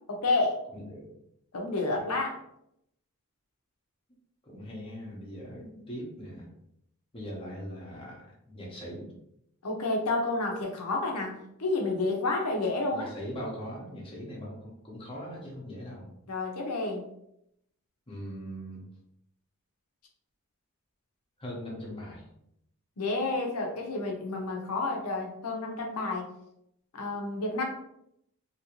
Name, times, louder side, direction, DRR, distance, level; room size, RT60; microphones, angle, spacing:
voice 1, 0.1-0.6 1.5-2.4 5.6-5.7 9.6-13.1 16.3-17.0 23.0-26.3 26.9-27.6, left 2 dB, 85° left, 1 dB, 0.7 m, -30 dB
voice 2, 0.7-1.1 1.9-2.0 4.4-6.5 7.1-9.1 12.9-16.1 18.1-18.8 21.4-22.2, equal, 25° left, -4 dB, 0.9 m, -40 dB
2.9 x 2.7 x 2.9 m, 0.77 s
head